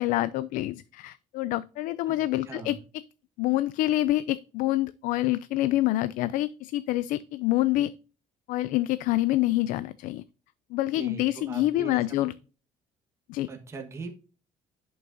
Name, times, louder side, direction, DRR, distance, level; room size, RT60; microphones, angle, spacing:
voice 1, 0.0-2.8 3.4-7.9 8.5-10.2 10.7-12.3 13.3-13.5, left 16 dB, 75° left, 0.4 m, -26 dB
voice 2, 2.4-2.8 11.0-12.3 13.5-14.1, right 4 dB, 20° right, 1.4 m, -40 dB
10.5 x 5.8 x 2.7 m
cardioid pair, 170°, 14 cm